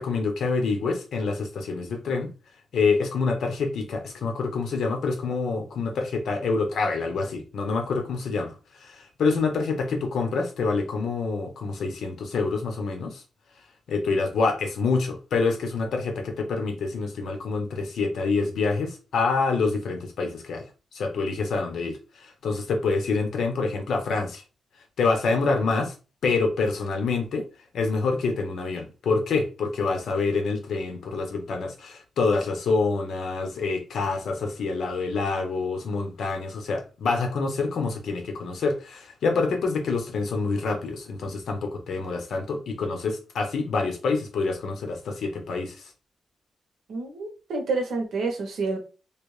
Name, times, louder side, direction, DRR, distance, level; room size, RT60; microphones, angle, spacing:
voice 1, 0.0-2.3 2.7-8.5 8.8-13.2 13.9-20.6 20.9-24.4 25.0-25.9 26.2-27.5 27.7-45.8, left 4 dB, 70° left, 0.9 m, -26 dB
voice 2, 46.9-48.8, right 3 dB, 70° right, 1.1 m, -28 dB
3.3 x 2.6 x 3.2 m
wide cardioid pair, 170°, 0 cm